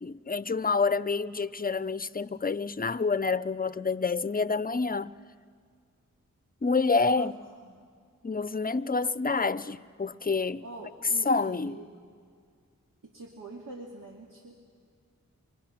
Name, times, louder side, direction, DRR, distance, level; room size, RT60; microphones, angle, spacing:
voice 1, 0.0-5.1 6.6-7.3 8.2-10.6 11.3-11.7, left 4 dB, 30° left, 0.6 m, -28 dB
voice 2, 10.6-12.1 13.0-14.6, right 2 dB, 80° right, 2.2 m, -45 dB
28.5 x 23.5 x 6.0 m
cardioid pair, 55°, 31 cm